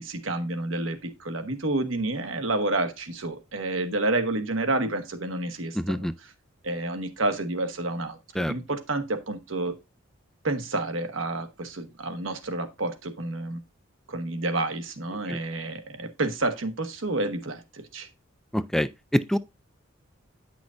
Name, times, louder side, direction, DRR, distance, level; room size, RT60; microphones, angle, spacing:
voice 1, 0.0-6.3 6.6-9.7 10.4-13.6 14.1-18.1, right 2 dB, 75° right, 1.4 m, -29 dB
voice 2, 5.8-6.1 8.4-8.5 15.3-15.4 18.5-19.4, equal, ahead, 0.3 m, -26 dB
9.6 x 6.1 x 2.5 m
head